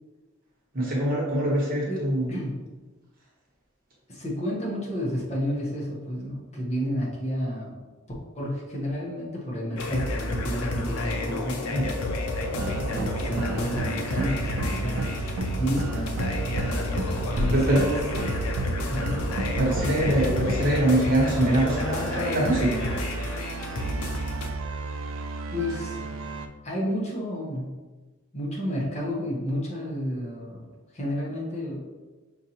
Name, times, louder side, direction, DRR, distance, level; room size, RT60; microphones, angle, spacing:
voice 1, 0.7-2.3 11.7-11.9 15.9-16.1 17.5-17.8 19.6-22.9, right 1 dB, 40° right, -5 dB, 1.1 m, -24 dB
voice 2, 1.9-2.6 4.1-7.8 8.3-11.6 12.8-15.3 15.6-16.3 17.3-18.6 18.9-19.3 25.5-26.1 26.6-27.7 28.3-31.8, equal, 30° left, -4 dB, 0.8 m, -31 dB
sound 1, 9.8-24.5, left 1 dB, 80° left, 0.5 m, -31 dB
sound 2, 12.4-26.5, right 2 dB, 65° right, 0.3 m, -32 dB
5.4 x 2.5 x 2.8 m, 1.3 s
head